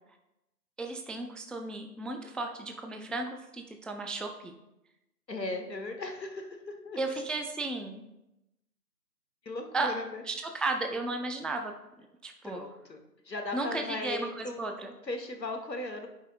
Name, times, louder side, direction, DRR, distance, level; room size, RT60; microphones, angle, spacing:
voice 1, 0.8-4.5 7.0-8.0 9.7-9.9 10.3-11.7 12.2-12.6 13.5-14.9, right 3 dB, ahead, 4 dB, 0.3 m, -34 dB
voice 2, 5.3-7.0 9.4-10.2 12.4-16.1, left 2 dB, 85° left, 3 dB, 1.3 m, -38 dB
11.5 x 5.4 x 2.4 m, 0.91 s
figure-of-eight pair, 160°, 49 cm